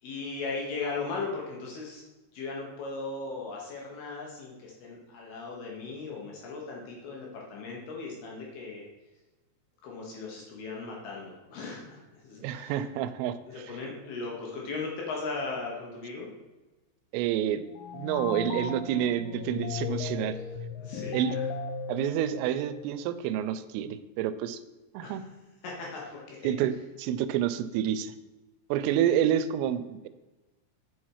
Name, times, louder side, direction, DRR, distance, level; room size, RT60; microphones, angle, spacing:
voice 1, 0.0-2.0 2.3-8.8 9.8-12.8 13.5-16.3 20.3-20.4 20.8-21.4 25.0-25.2 25.6-26.4, left 3 dB, 70° left, -2 dB, 2.7 m, -37 dB
voice 2, 12.4-13.4 17.1-17.7 17.9-20.3 21.1-21.3 21.9-24.6 24.9-25.2 26.4-26.7 27.0-28.1 28.7-30.1, right 10 dB, 90° right, 13 dB, 3.2 m, -28 dB
sound 1, 17.7-23.2, left 6 dB, 85° left, 3.2 m, -36 dB
8.4 x 5.8 x 4.7 m, 1.1 s
omnidirectional pair, 5.7 m